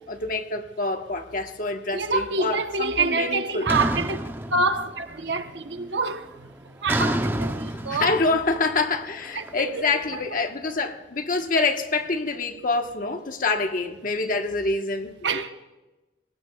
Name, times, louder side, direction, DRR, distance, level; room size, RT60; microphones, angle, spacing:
voice 1, 0.1-3.7 7.7-15.4, left 3 dB, 50° left, 1.3 m, -26 dB
voice 2, 1.9-4.2 4.5-6.5 6.8-8.1 9.3-9.8 10.1-10.4 15.2-15.5, right 3 dB, 75° right, 1.0 m, -26 dB
sound 1, 3.7-5.2 5.5-6.0 6.9-9.9, right 1 dB, 10° right, 0.7 m, -29 dB
22.5 x 18.5 x 2.4 m
head